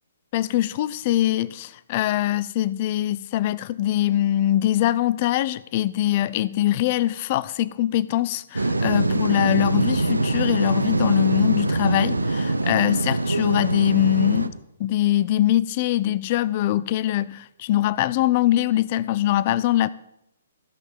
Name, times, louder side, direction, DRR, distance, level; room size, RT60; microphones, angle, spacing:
voice 1, 0.3-14.5 14.8-19.9, left 13 dB, 40° left, 0.4 m, -22 dB
sound 1, 8.6-14.5, right 2 dB, 90° right, 0.7 m, -23 dB
13.5 x 6.1 x 7.0 m
figure-of-eight pair, 130°, 0 cm